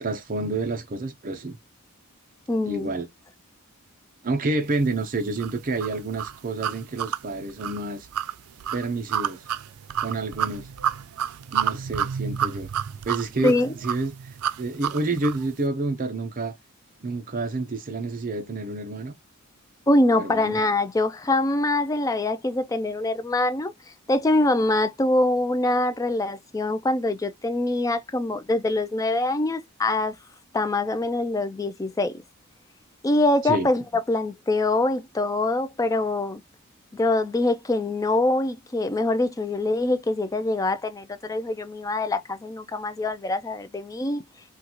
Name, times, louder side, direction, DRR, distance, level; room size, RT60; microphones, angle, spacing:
voice 1, 0.0-1.6 2.6-3.1 4.2-8.1 8.7-9.4 10.0-10.7 11.5-12.7 13.1-14.1 14.6-16.6 17.0-19.2 20.2-20.6 33.4-33.7, right 2 dB, 40° right, 0.6 m, -29 dB
voice 2, 2.5-2.9 13.4-13.7 19.9-23.7 24.1-30.2 30.5-32.2 33.0-36.4 36.9-44.2, left 2 dB, 15° left, 0.4 m, -24 dB
sound 1, 5.4-15.5, right 9 dB, 85° right, 0.4 m, -30 dB
3.8 x 2.4 x 2.9 m
head